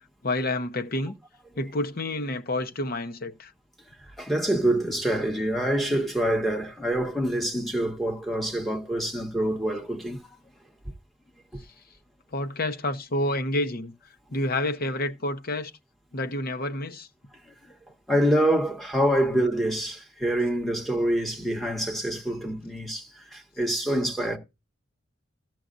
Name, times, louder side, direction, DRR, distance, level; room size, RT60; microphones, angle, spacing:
voice 1, 0.2-1.1 1.6-3.5 12.3-13.9 14.3-15.7 16.1-17.1, left 1 dB, 50° left, 0.9 m, -29 dB
voice 2, 4.2-10.2 17.5-17.6 18.1-24.4, right 1 dB, ahead, 1.6 m, -26 dB
14.0 x 7.6 x 2.6 m
head